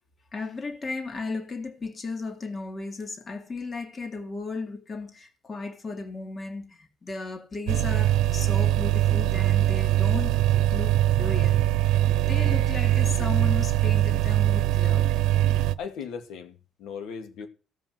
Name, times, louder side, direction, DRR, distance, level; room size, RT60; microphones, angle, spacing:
voice 1, 0.3-10.3 10.7-11.6 12.3-15.1, left 3 dB, 25° left, 2.4 m, -35 dB
sound 1, 7.7-15.7, right 13 dB, 85° right, 0.8 m, -22 dB
voice 2, 15.8-17.5, left 6 dB, 80° left, 2.1 m, -37 dB
16.0 x 5.5 x 7.8 m
cardioid pair, 130°, 0 cm